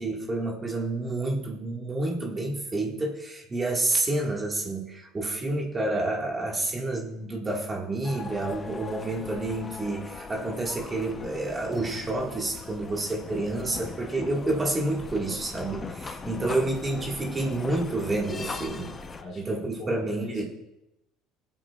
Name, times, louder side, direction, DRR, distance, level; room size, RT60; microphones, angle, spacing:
voice 1, 0.0-18.9 19.3-20.4, right 2 dB, 20° right, -1 dB, 1.6 m, -29 dB
sound 1, 8.0-19.2, left 4 dB, 20° left, 0.6 m, -39 dB
voice 2, 16.2-16.8 18.5-18.9 19.2-20.6, left 2 dB, 45° left, 0 dB, 3.2 m, -41 dB
24.0 x 8.3 x 2.3 m, 0.92 s
cardioid pair, 140°, 0 cm